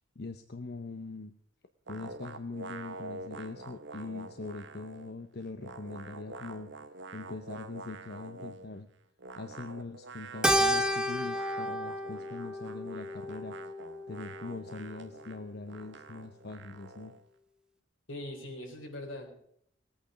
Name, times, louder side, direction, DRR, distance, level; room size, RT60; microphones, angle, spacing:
voice 1, 0.2-1.3 1.9-6.7 7.1-8.9 9.4-13.6 14.1-17.1, left 3 dB, 55° left, 8 dB, 0.8 m, -42 dB
sound 1, 1.9-5.2 5.4-8.7 9.2-17.2, right 3 dB, 65° right, 1.0 m, -46 dB
Keyboard (musical), 10.4-15.0, equal, 5° right, 0.6 m, -32 dB
voice 2, 18.1-19.3, left 1 dB, 80° left, 1 dB, 3.9 m, -41 dB
18.5 x 8.8 x 5.1 m, 0.70 s
head